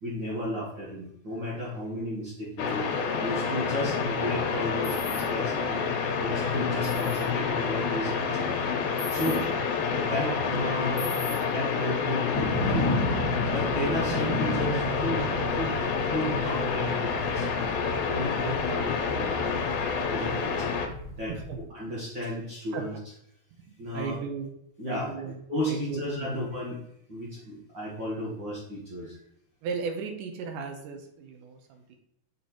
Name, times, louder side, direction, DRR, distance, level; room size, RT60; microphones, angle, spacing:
voice 1, 0.0-2.9 3.2-5.8 6.2-8.5 9.1-9.4 9.9-11.1 11.3-12.9 13.5-15.8 16.1-17.5 18.1-19.6 20.0-20.8 21.2-21.4 21.7-22.9 23.8-24.2 24.8-25.1 25.5-26.8 27.1-29.2, equal, 50° right, -6 dB, 1.4 m, -33 dB
sound 1, 2.6-20.9, left 5 dB, 85° left, 2.6 m, -28 dB
sound 2, 4.8-5.2 6.8-7.2 9.0-9.4 11.0-11.3, left 5 dB, 20° left, 0.9 m, -38 dB
sound 3, 12.3-21.6, left 1 dB, 35° left, 1.9 m, -33 dB
voice 2, 21.3-21.6 22.7-22.9 23.6-24.5 24.9-26.4 29.6-32.0, right 5 dB, 75° right, 4 dB, 2.2 m, -36 dB
6.7 x 5.1 x 2.9 m, 0.74 s
omnidirectional pair, 4.1 m